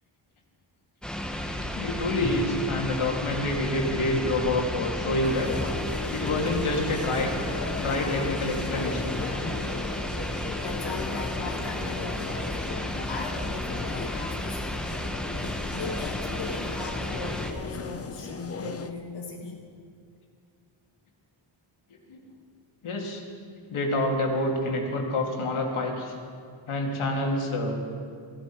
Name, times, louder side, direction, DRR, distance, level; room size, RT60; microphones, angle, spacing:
sound 1, 1.0-17.5, left 1 dB, ahead, 0.9 m, -33 dB
voice 1, 1.7-5.5 6.1-7.3 7.8-9.2 22.1-22.2 22.8-23.2 23.7-26.1 26.7-27.8, left 2 dB, 85° left, 1 dB, 2.2 m, -27 dB
sound 2, 5.2-18.9, left 5 dB, 30° left, 0.6 m, -37 dB
voice 2, 10.5-15.0 15.4-19.7, left 4 dB, 60° left, 0 dB, 1.3 m, -39 dB
16.0 x 15.0 x 4.5 m, 2.3 s
wide cardioid pair, 155°, 48 cm